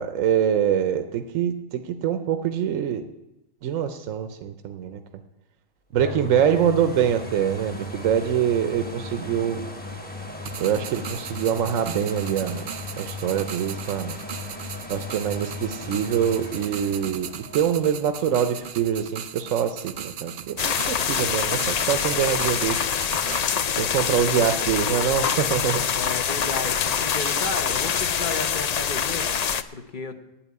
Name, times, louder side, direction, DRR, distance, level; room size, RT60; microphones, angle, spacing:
voice 1, 0.0-3.0 3.6-5.0 5.9-9.6 10.6-12.6 13.0-14.2 14.9-22.8 23.8-25.9, right 9 dB, 85° right, 8 dB, 1.1 m, -24 dB
sound 1, 6.0-19.7 20.2-20.3, left 2 dB, 10° left, 1.0 m, -37 dB
voice 2, 6.5-6.8 24.4-24.7 25.9-30.2, left 3 dB, 45° left, 6 dB, 1.0 m, -33 dB
sound 2, 10.5-23.4, right 8 dB, 60° right, 0.8 m, -38 dB
sound 3, 20.6-29.6, left 7 dB, 75° left, 0.3 m, -25 dB
8.9 x 8.6 x 9.4 m, 0.99 s
omnidirectional pair, 1.3 m